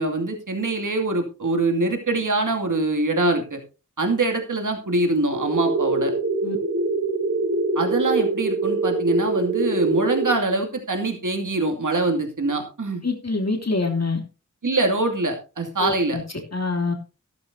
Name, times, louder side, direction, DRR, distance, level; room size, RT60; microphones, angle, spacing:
voice 1, 0.0-3.6 4.0-6.1 7.8-13.0 14.6-16.2, right 2 dB, 75° right, 3 dB, 2.5 m, -24 dB
sound 1, 5.3-10.3, right 3 dB, 40° right, 1.4 m, -24 dB
voice 2, 13.0-14.2 15.8-16.2 16.5-16.9, left 3 dB, 55° left, 2 dB, 2.9 m, -25 dB
12.5 x 12.5 x 2.7 m, 0.31 s
wide cardioid pair, 45°, 31 cm